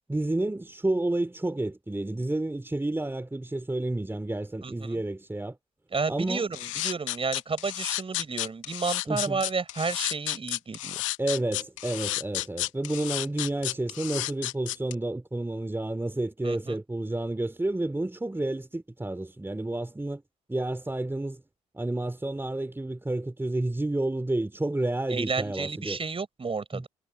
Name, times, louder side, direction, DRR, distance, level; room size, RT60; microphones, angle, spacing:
voice 1, 0.1-5.6 6.1-6.5 9.1-9.4 11.2-20.2 20.5-21.4 21.7-26.0 26.7-26.8, right 2 dB, 15° right, 3.5 m, -30 dB
voice 2, 4.6-5.0 5.9-11.0 16.4-16.8 25.1-26.9, right 4 dB, 35° right, 5.7 m, -31 dB
sound 1, 6.5-14.9, left 18 dB, 85° left, 1.2 m, -32 dB
hypercardioid pair, 45°, 16 cm